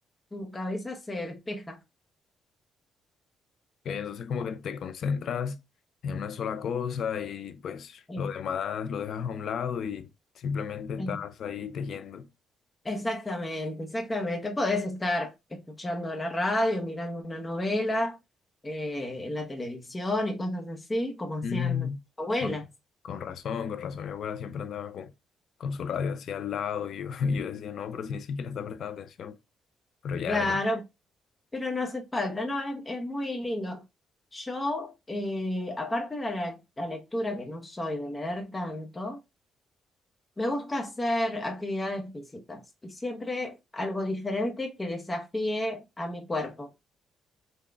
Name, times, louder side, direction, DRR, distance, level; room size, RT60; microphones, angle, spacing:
voice 1, 0.3-1.8 8.1-8.3 11.0-11.2 12.8-18.2 18.6-21.9 22.2-22.6 30.3-30.8 31.5-33.8 34.3-39.2 40.4-46.7, left 1 dB, 20° left, 0.8 m, -31 dB
voice 2, 3.8-5.6 6.0-10.1 10.4-12.3 21.4-22.0 22.4-22.6 23.0-25.1 25.6-29.4 30.0-30.6, left 7 dB, 65° left, 0.5 m, -33 dB
3.8 x 2.3 x 3.3 m
cardioid pair, 90°, 0 cm